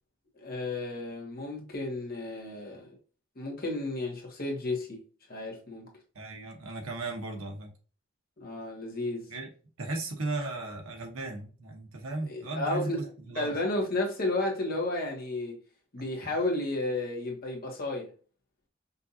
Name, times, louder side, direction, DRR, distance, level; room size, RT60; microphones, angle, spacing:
voice 1, 0.4-2.8 3.4-5.0 5.3-5.9 8.4-9.3 12.3-13.0 13.3-15.6 15.9-18.1, left 2 dB, 45° left, 1.3 m, -32 dB
voice 2, 6.1-7.7 9.3-9.5 9.8-13.5 16.2-16.4, right 2 dB, 85° right, 1.2 m, -36 dB
5.4 x 2.6 x 2.7 m
head